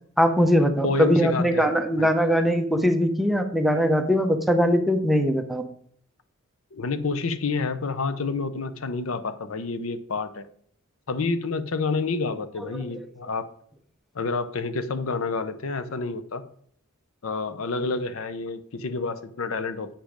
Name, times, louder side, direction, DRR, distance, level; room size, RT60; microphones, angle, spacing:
voice 1, 0.2-5.6, equal, ahead, 5 dB, 0.8 m, -21 dB
voice 2, 0.8-1.7 2.0-2.1 6.7-10.5 11.1-13.5 14.1-16.4 17.2-19.9, left 4 dB, 75° left, 11 dB, 0.7 m, -28 dB
9.0 x 5.2 x 5.1 m, 0.62 s
head